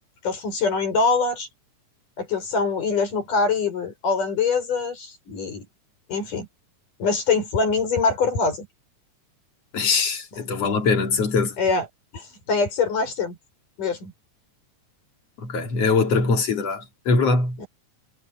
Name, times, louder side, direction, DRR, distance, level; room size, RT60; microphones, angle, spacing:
voice 1, 0.2-1.5 2.2-5.7 6.1-6.5 7.0-8.7 10.3-10.4 11.6-11.9 12.1-13.4 13.8-14.1 17.6-17.7, left 4 dB, 90° left, 8.4 m, -24 dB
voice 2, 9.7-11.6 15.4-17.6, left 4 dB, 55° left, 3.8 m, -22 dB
omnidirectional pair, 3.6 m